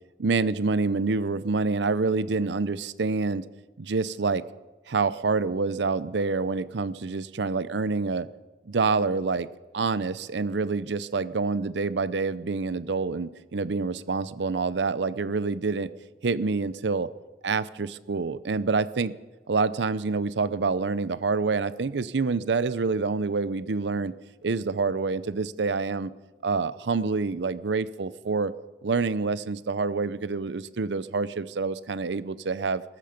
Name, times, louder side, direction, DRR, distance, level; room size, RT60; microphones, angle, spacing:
voice 1, 0.2-3.5 3.8-4.4 4.9-8.3 8.7-9.5 9.7-15.9 16.2-17.1 17.4-19.1 19.5-24.1 24.4-26.1 26.4-28.5 28.8-32.8, right 4 dB, 80° right, 16 dB, 0.6 m, -27 dB
20.5 x 13.5 x 5.2 m, 1.1 s
head